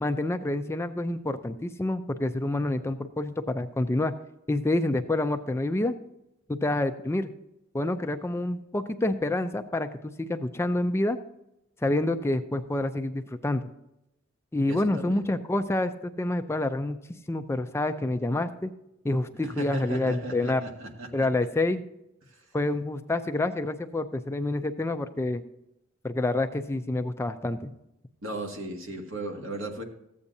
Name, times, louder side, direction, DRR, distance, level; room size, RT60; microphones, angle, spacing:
voice 1, 0.0-4.1 4.5-5.9 6.5-7.3 7.7-11.2 11.8-13.6 14.5-17.0 17.3-18.7 19.0-20.6 21.1-21.8 22.5-25.4 26.0-27.7, left 2 dB, 10° left, 8 dB, 0.4 m, -28 dB
voice 2, 14.7-15.2 19.4-21.3 22.3-22.4 28.2-29.8, right 1 dB, 75° right, 2 dB, 1.7 m, -35 dB
14.0 x 8.4 x 2.7 m, 0.86 s
head